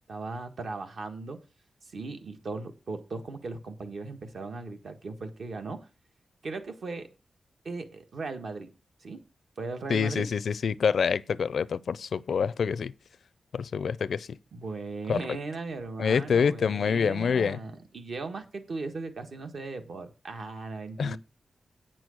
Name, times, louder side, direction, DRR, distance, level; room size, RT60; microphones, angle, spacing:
voice 1, 0.1-1.4 1.9-5.8 6.4-7.1 7.6-8.7 9.0-9.2 9.6-10.3 14.5-21.2, right 3 dB, 60° right, 1.5 m, -37 dB
voice 2, 9.9-12.9 13.5-14.4 15.1-15.2 16.0-17.6 21.0-21.2, left 6 dB, 70° left, 0.4 m, -26 dB
8.9 x 6.2 x 6.5 m
wide cardioid pair, 160°, 0 cm